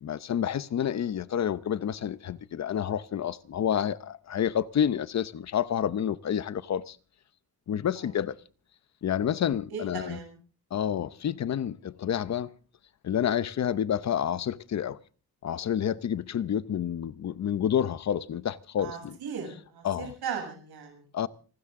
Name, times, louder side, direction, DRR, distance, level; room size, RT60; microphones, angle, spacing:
voice 1, 0.0-7.0 7.7-8.4 9.0-10.2 10.7-12.5 13.0-15.0 15.4-19.2 19.8-20.1 21.1-21.3, left 9 dB, 45° left, 0.8 m, -29 dB
voice 2, 9.7-10.3 18.8-21.3, right 6 dB, 75° right, 7.6 m, -38 dB
29.0 x 12.5 x 3.7 m
wide cardioid pair, 150°, 38 cm